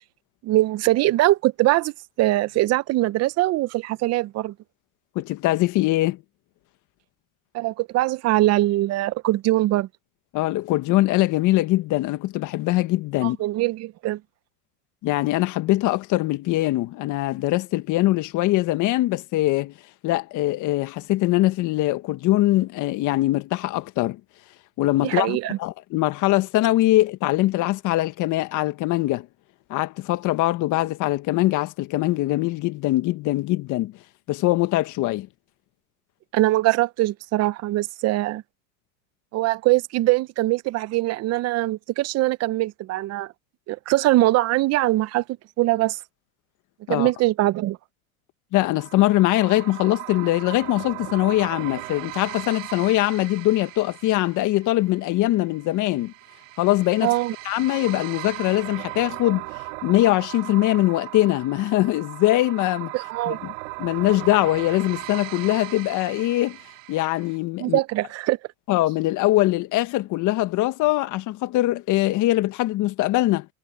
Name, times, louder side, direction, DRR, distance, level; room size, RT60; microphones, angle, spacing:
voice 1, 0.4-4.5 7.5-9.9 13.2-14.2 25.0-25.6 36.3-38.4 39.3-43.3 43.7-45.2 45.6-46.0 46.9-47.8 57.0-57.3 62.9-63.4 67.6-68.4, right 17 dB, 40° right, 0.8 m, -22 dB
voice 2, 5.1-6.2 10.3-13.4 15.0-19.7 20.0-24.2 24.8-29.3 29.7-33.9 34.3-35.3 46.9-47.1 48.5-56.1 56.6-57.1 57.4-59.4 59.8-62.9 63.3-63.5 63.8-66.6 66.9-67.8 68.7-73.5, left 17 dB, 45° left, 1.7 m, -22 dB
sound 1, 48.7-67.4, right 27 dB, 70° right, 4.8 m, -38 dB
supercardioid pair, 120°, 41 cm